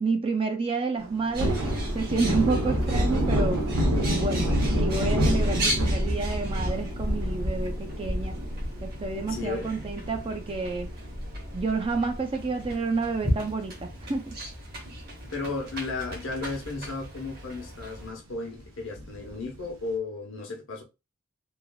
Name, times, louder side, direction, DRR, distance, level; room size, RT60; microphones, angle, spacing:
voice 1, 0.0-1.6 1.9-3.6 4.1-8.4 8.8-10.9 11.5-14.4, right 4 dB, 25° right, 0.4 m, -29 dB
Thunder, 1.0-11.7 12.1-12.2 12.6-14.1 14.3-14.5 14.8-15.6 16.0-16.1 16.5-16.6 19.0-19.5, equal, 85° right, 1.0 m, -29 dB
Bird, 1.3-18.1, equal, 50° right, 1.0 m, -33 dB
voice 2, 9.3-9.7 15.3-20.8, left 3 dB, 65° left, 0.9 m, -34 dB
3.1 x 2.4 x 2.2 m
head